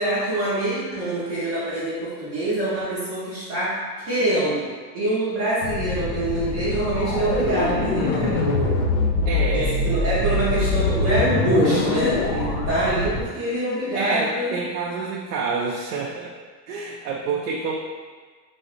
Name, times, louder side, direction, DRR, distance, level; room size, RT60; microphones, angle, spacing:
voice 1, 0.0-3.8 4.1-4.7 4.9-8.8 9.5-14.5, right 1 dB, 25° right, -10 dB, 0.5 m, -24 dB
sound 1, 5.6-13.2, left 3 dB, 60° left, 0.6 m, -24 dB
voice 2, 9.3-9.8 13.9-16.3 16.7-17.7, right 4 dB, 70° right, -2 dB, 0.5 m, -27 dB
3.4 x 2.0 x 3.9 m, 1.5 s
supercardioid pair, 175°, 49 cm